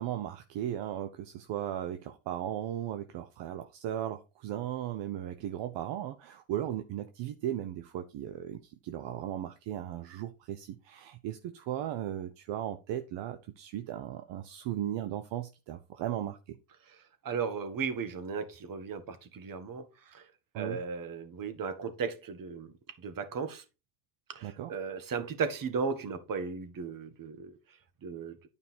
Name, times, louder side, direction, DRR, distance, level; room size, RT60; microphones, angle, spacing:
voice 1, 0.0-16.6 20.5-20.8 24.4-24.7, right 11 dB, 70° right, 1.0 m, -36 dB
voice 2, 16.8-20.3 20.6-23.6 24.3-28.5, right 5 dB, 45° right, 1.9 m, -36 dB
9.8 x 5.3 x 4.4 m
supercardioid pair, 95°, 45 cm